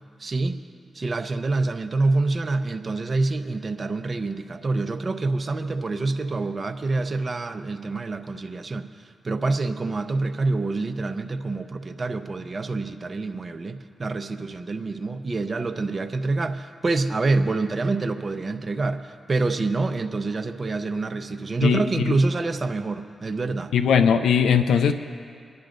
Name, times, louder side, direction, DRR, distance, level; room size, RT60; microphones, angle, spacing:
voice 1, 0.2-0.6 0.9-8.9 9.2-23.7, right 3 dB, 45° right, 7 dB, 0.8 m, -26 dB
voice 2, 21.6-22.1 23.7-24.9, left 7 dB, 85° left, 9 dB, 0.5 m, -19 dB
26.5 x 10.5 x 2.6 m, 2.4 s
supercardioid pair, 40°, 0 cm